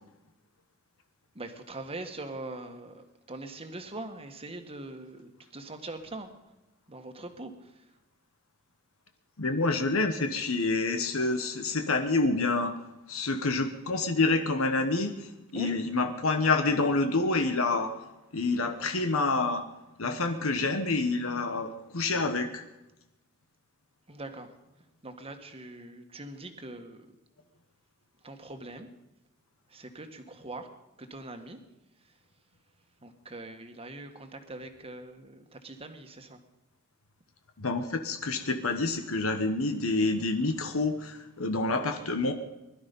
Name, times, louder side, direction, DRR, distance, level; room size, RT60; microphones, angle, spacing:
voice 1, 1.3-6.3 6.9-7.7 15.5-15.7 24.1-24.5 25.0-27.1 28.2-28.9 29.7-30.7 31.0-31.6 33.0-36.4, right 2 dB, 30° right, 6 dB, 1.6 m, -42 dB
voice 2, 9.4-12.7 13.1-17.9 18.3-19.6 20.0-22.6 37.6-42.3, left 3 dB, 80° left, 6 dB, 1.2 m, -28 dB
21.0 x 12.0 x 5.4 m, 0.99 s
head